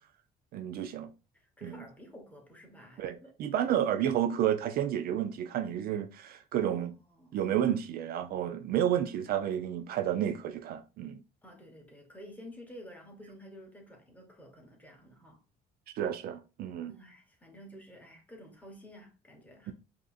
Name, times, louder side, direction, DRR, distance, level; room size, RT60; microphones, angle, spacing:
voice 1, 0.5-1.1 1.6-1.7 3.0-6.9 7.3-11.2 16.0-16.9, right 10 dB, 65° right, 0.5 m, -31 dB
voice 2, 1.3-3.4 6.5-7.5 11.4-15.4 16.8-19.7, equal, 10° left, 1.2 m, -51 dB
5.1 x 2.8 x 2.4 m
cardioid pair, 110°, 17 cm